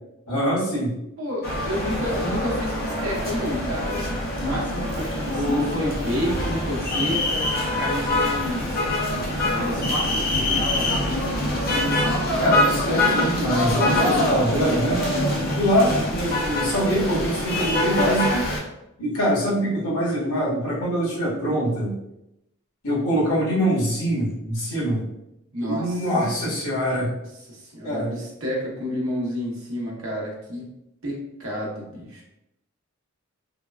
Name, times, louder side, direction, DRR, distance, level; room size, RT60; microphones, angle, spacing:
voice 1, 0.3-0.9 5.3-5.7 11.7-12.1 12.4-15.0 15.6-18.5 19.0-21.9 22.8-25.0 25.7-27.1 27.8-28.2, equal, 85° left, -7 dB, 1.3 m, -24 dB
voice 2, 1.2-8.8 9.4-10.9 25.5-26.1 27.0-27.1 27.5-30.7 31.0-32.2, equal, 65° right, -4 dB, 0.8 m, -30 dB
sound 1, 1.4-18.6, left 1 dB, 40° left, 0.5 m, -24 dB
3.4 x 2.1 x 2.3 m, 0.86 s
head